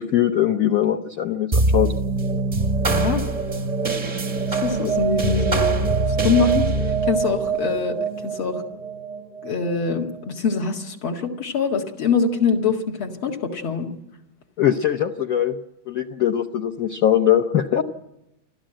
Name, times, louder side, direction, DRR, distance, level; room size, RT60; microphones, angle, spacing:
voice 1, 0.0-1.9 14.6-15.6 15.9-17.8, left 10 dB, 55° left, 3 dB, 1.0 m, -21 dB
sound 1, 1.5-10.2, right 3 dB, 30° right, 0.7 m, -23 dB
voice 2, 2.8-3.2 4.5-5.8 6.2-6.7 7.1-8.0 8.2-8.6 9.4-13.9, left 5 dB, 70° left, 1 dB, 2.8 m, -23 dB
29.0 x 12.5 x 8.9 m, 0.88 s
omnidirectional pair, 2.4 m